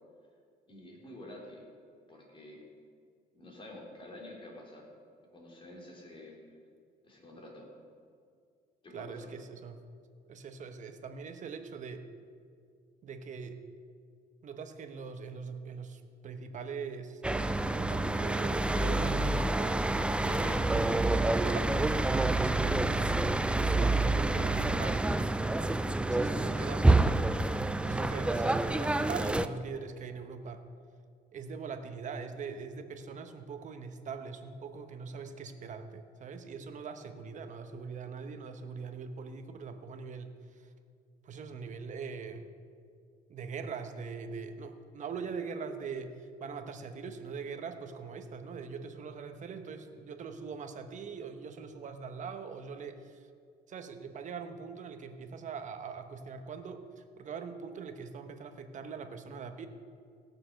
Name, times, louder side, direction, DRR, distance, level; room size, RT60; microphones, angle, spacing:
voice 1, 0.7-1.6 2.1-2.6 3.3-4.9 5.3-6.3 7.0-7.7 8.8-9.3, left 1 dB, 30° left, -1 dB, 3.4 m, -49 dB
voice 2, 8.9-9.8 10.3-12.1 13.0-13.6 14.4-17.2 17.8-19.8 20.2-23.0 23.6-25.1 26.1-27.3 27.8-30.6 31.3-40.7 41.2-42.4 43.3-53.3 53.7-59.7, right 5 dB, 45° right, 7 dB, 1.1 m, -42 dB
sound 1, 17.2-29.5, right 2 dB, 5° right, 0.4 m, -28 dB
16.5 x 6.8 x 6.5 m, 2.2 s
cardioid pair, 110°, 17 cm